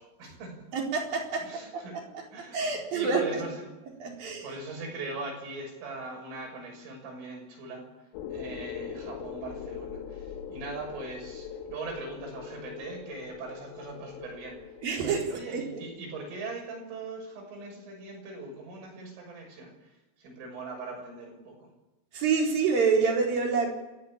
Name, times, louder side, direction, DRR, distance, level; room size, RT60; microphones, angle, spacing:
voice 1, 0.0-0.7 1.4-2.0 2.3-3.6 4.2-7.9 8.3-14.6 15.0-21.7, right 3 dB, 85° right, 1 dB, 9.1 m, -41 dB
voice 2, 0.7-2.0 2.5-3.4 4.0-4.5 14.8-15.2 15.5-15.8 22.1-23.7, right 5 dB, 50° right, 0 dB, 5.7 m, -27 dB
sound 1, 8.1-16.0, left 7 dB, 85° left, 4.1 m, -42 dB
27.5 x 15.5 x 8.7 m, 1.0 s
omnidirectional pair, 5.6 m